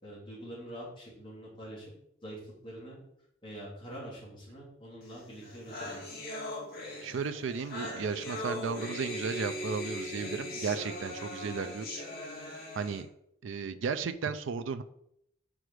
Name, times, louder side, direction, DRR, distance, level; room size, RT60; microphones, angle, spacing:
voice 1, 0.0-1.9 2.2-3.0 3.4-6.2, right 1 dB, 25° left, -6 dB, 2.8 m, -45 dB
sound 1, 5.1-5.2 5.4-13.0, left 1 dB, 50° left, 2.1 m, -39 dB
voice 2, 7.0-12.0 12.7-13.1 13.4-14.8, right 5 dB, 75° right, 10 dB, 0.4 m, -34 dB
4.9 x 4.8 x 6.2 m, 0.75 s
head